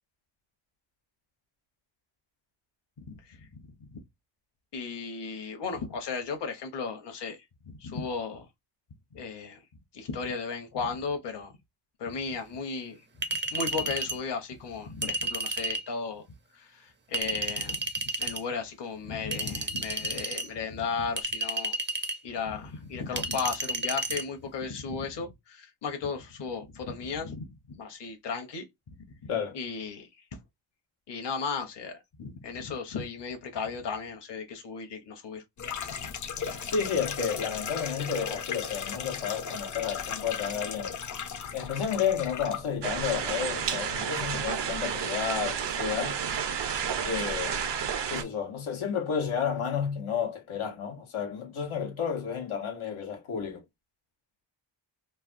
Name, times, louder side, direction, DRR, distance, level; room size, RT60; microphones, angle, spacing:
voice 1, 3.1-4.0 4.7-7.4 7.6-8.5 9.1-9.6 9.9-11.5 12.0-13.0 13.5-16.2 16.5-17.9 18.2-21.8 22.2-28.9 29.2-29.3 29.5-30.1 31.1-35.4 36.0-36.1 36.4-36.6, left 5 dB, 60° left, 0.9 m, -35 dB
Chink clink, 13.2-14.2 15.0-15.9 17.1-18.4 19.3-20.5 21.2-22.2 23.2-24.2, right 2 dB, 25° right, 0.5 m, -32 dB
sound 1, 35.6-44.8, left 7 dB, 40° left, 0.5 m, -37 dB
voice 2, 36.7-41.0 41.5-46.2 47.0-47.7 48.1-53.6, left 7 dB, 90° left, 1.0 m, -31 dB
sound 2, 42.8-48.2, right 7 dB, 60° right, 0.7 m, -31 dB
3.3 x 2.1 x 2.4 m
wide cardioid pair, 105°, 48 cm